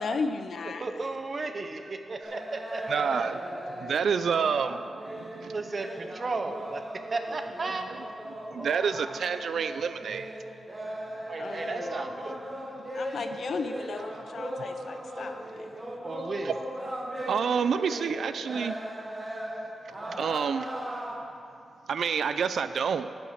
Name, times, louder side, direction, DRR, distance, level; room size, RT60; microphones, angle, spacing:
voice 1, 0.0-0.9 11.4-11.9 12.9-15.7, left 4 dB, 55° left, 8 dB, 0.5 m, -35 dB
voice 2, 0.8-3.0 5.5-6.8 7.1-7.9 11.3-12.4 16.0-16.6, right 3 dB, 35° right, 6 dB, 0.7 m, -34 dB
sound 1, 2.2-21.2, equal, 15° right, 1.0 m, -38 dB
voice 3, 2.9-3.4 3.8-5.5 8.5-10.3 13.3-13.4 16.5-16.6 17.3-18.8 20.2-20.7 21.9-23.1, right 6 dB, 65° right, 11 dB, 0.3 m, -28 dB
9.9 x 5.9 x 6.4 m, 2.6 s
wide cardioid pair, 175°, 0 cm